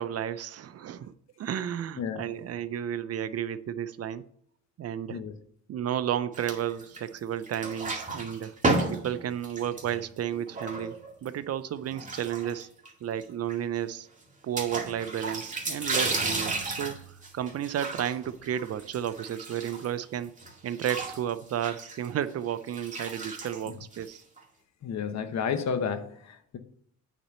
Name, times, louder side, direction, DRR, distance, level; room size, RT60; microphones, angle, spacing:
voice 1, 0.0-4.2 4.8-5.2 5.7-8.5 8.9-11.0 11.2-12.7 13.0-14.1 14.4-17.0 17.3-20.3 20.6-24.2, right 10 dB, 55° right, 0.6 m, -32 dB
sound 1, 6.3-7.2 7.4-11.3 11.9-12.9 13.2-13.3 13.5-13.6 14.6-20.0 20.4-24.4, right 2 dB, 25° right, 2.1 m, -33 dB
voice 2, 24.8-26.6, left 6 dB, 60° left, 1.1 m, -31 dB
8.8 x 4.2 x 6.8 m
cardioid pair, 90°, 30 cm